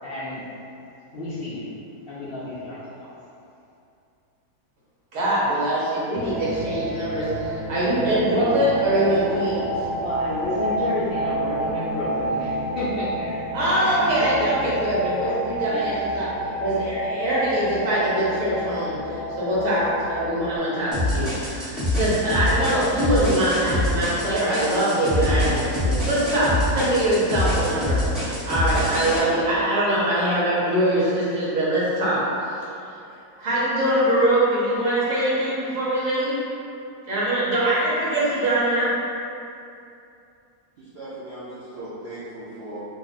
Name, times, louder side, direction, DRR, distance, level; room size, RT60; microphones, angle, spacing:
voice 1, 0.0-0.4 1.1-1.8 2.1-3.1 10.0-16.0 16.7-17.0 17.3-17.4, left 2 dB, 75° left, -10 dB, 0.5 m, -32 dB
voice 2, 5.1-9.7 13.5-16.3 16.6-19.8 20.1-32.2 33.4-36.3 37.1-38.9, right 1 dB, 55° right, -9 dB, 1.2 m, -23 dB
sound 1, 6.1-20.6, right 1 dB, 35° right, 1.1 m, -29 dB
sound 2, 20.9-29.2, left 1 dB, ahead, 0.5 m, -25 dB
voice 3, 40.8-42.8, right 1 dB, 80° right, -11 dB, 0.5 m, -38 dB
2.8 x 2.4 x 4.0 m, 2.6 s
omnidirectional pair, 1.8 m